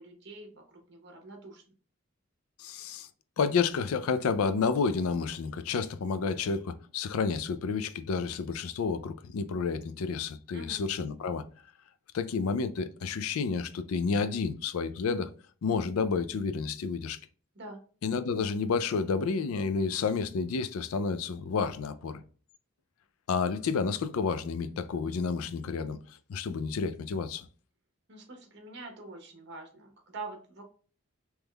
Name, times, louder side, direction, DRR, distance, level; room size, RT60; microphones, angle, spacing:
voice 1, 0.0-1.6 10.5-10.8 17.5-17.8 28.1-30.6, right 3 dB, 50° right, 0.9 m, -45 dB
voice 2, 2.6-3.1 3.4-11.4 12.1-15.3 15.6-17.2 18.0-22.2 23.3-27.5, left 5 dB, 80° left, 0.4 m, -30 dB
3.5 x 3.0 x 2.2 m
head